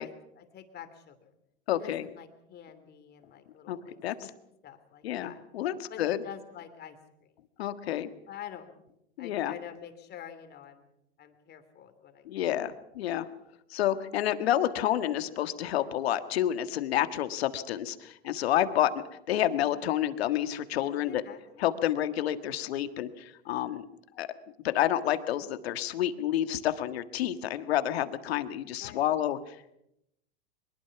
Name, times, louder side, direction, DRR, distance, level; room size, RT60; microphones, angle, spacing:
voice 1, 0.0-1.3 1.7-4.3 4.6-5.4 5.9-7.0 8.3-8.7 9.2-10.9 11.2-12.4 20.8-21.7 28.8-29.1, left 9 dB, 30° left, 9 dB, 2.9 m, -47 dB
voice 2, 1.7-2.0 3.7-4.1 5.0-6.2 7.6-8.1 9.2-9.5 12.2-13.3 13.7-21.2 21.6-23.8 24.2-24.3 24.6-29.4, left 12 dB, 75° left, 10 dB, 1.7 m, -29 dB
23.0 x 21.5 x 5.9 m, 0.81 s
hypercardioid pair, 120°, 31 cm